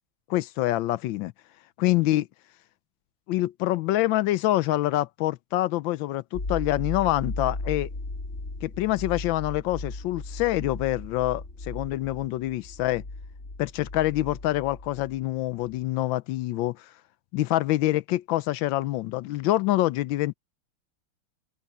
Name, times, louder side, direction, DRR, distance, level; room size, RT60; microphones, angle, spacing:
voice 1, 0.3-1.3 1.8-2.3 3.3-7.9 8.6-13.0 13.6-16.9 17.3-20.3, left 16 dB, 75° left, 1.2 m, -26 dB
sound 1, 6.3-15.4 15.6-15.8, left 2 dB, 35° left, 3.2 m, -37 dB
open air
omnidirectional pair, 2.4 m